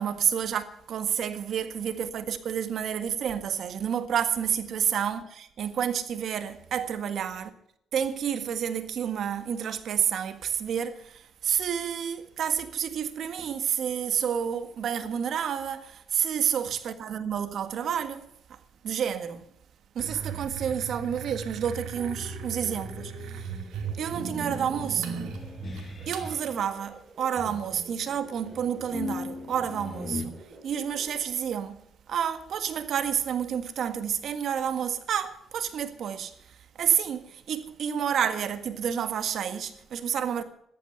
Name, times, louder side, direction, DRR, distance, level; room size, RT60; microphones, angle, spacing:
voice 1, 0.0-7.5 7.9-19.5 20.0-23.6 23.9-25.3 26.1-31.8 32.1-40.4, right 8 dB, 70° right, 1.8 m, -30 dB
sound 1, 20.0-26.3, right 6 dB, 85° right, 2.4 m, -37 dB
sound 2, 21.9-26.7 27.4-30.3, left 3 dB, 40° left, 2.2 m, -40 dB
sound 3, 22.7-31.2, right 2 dB, 30° right, 7.4 m, -51 dB
14.0 x 12.0 x 8.0 m
cardioid pair, 85°, 0 cm